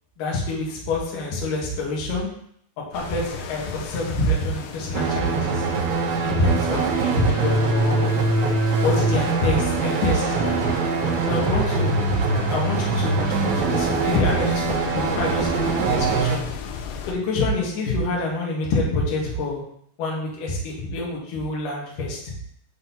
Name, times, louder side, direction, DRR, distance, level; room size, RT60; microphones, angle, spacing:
voice 1, 0.2-2.3 2.8-5.6 6.2-8.0 8.8-10.7 11.3-12.2 12.5-16.4 17.1-19.6 20.0-22.2, left 2 dB, 65° left, -3 dB, 2.8 m, -26 dB
sound 1, 2.9-17.1, left 7 dB, 80° left, 2.1 m, -37 dB
sound 2, 4.9-16.4, right 3 dB, 80° right, 2.5 m, -23 dB
sound 3, 9.7-15.0, left 1 dB, 15° left, 1.8 m, -40 dB
9.9 x 3.8 x 2.9 m, 0.69 s
omnidirectional pair, 4.7 m